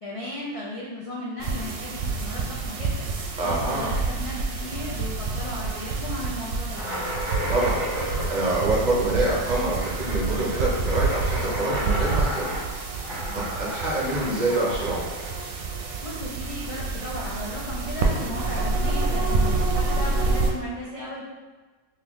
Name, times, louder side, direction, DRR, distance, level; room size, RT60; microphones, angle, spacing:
voice 1, 0.0-3.1 3.4-7.1 13.3-13.6 16.0-21.2, left 1 dB, 55° left, -5 dB, 0.3 m, -35 dB
sound 1, 1.4-20.5, right 3 dB, 75° right, 0.8 m, -28 dB
voice 2, 3.4-4.0 7.5-7.8 8.3-12.5 13.3-15.0, right 2 dB, 45° right, -4 dB, 0.7 m, -26 dB
sound 2, 6.8-16.1, equal, 5° right, 1.2 m, -33 dB
3.8 x 2.9 x 3.0 m, 1.3 s
omnidirectional pair, 1.2 m